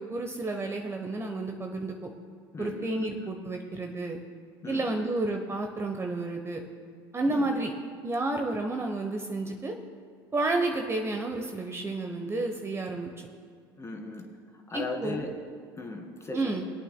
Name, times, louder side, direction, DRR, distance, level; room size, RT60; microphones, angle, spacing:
voice 1, 0.0-2.1 2.6-4.2 4.7-6.6 7.1-7.7 8.0-9.7 10.3-13.1 14.7-15.2 16.3-16.6, right 2 dB, 20° right, 3 dB, 0.9 m, -31 dB
voice 2, 2.5-3.1 4.6-5.1 7.3-7.5 13.8-14.2 14.5-15.3 15.8-16.7, left 2 dB, 20° left, 1 dB, 2.2 m, -37 dB
24.5 x 8.3 x 2.2 m, 2.2 s
hypercardioid pair, 70°, 13 cm